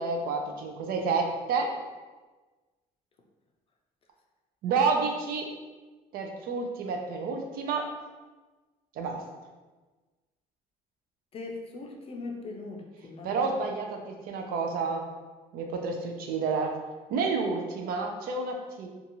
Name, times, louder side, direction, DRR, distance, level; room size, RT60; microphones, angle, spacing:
voice 1, 0.0-1.8 4.6-5.5 6.1-7.9 9.0-9.2 13.2-15.1 15.5-16.7 17.1-18.9, right 4 dB, 65° right, 3 dB, 0.4 m, -29 dB
voice 2, 11.3-13.4, left 3 dB, 35° left, 1 dB, 0.5 m, -40 dB
2.6 x 2.3 x 2.9 m, 1.3 s
cardioid pair, 110°, 16 cm